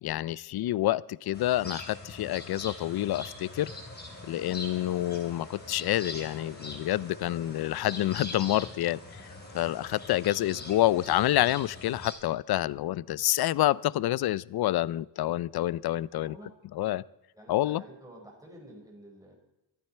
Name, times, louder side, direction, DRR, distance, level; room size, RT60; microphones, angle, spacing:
voice 1, 0.0-3.7 4.3-9.3 9.5-16.3 16.7-17.0 17.5-17.8, left 14 dB, 60° left, 21 dB, 0.5 m, -28 dB
sound 1, 1.3-12.1, left 2 dB, 20° left, 4.5 m, -43 dB
voice 2, 16.1-16.5 17.3-19.4, right 1 dB, 10° right, -1 dB, 5.1 m, -50 dB
26.0 x 9.1 x 4.5 m, 0.90 s
cardioid pair, 130°, 44 cm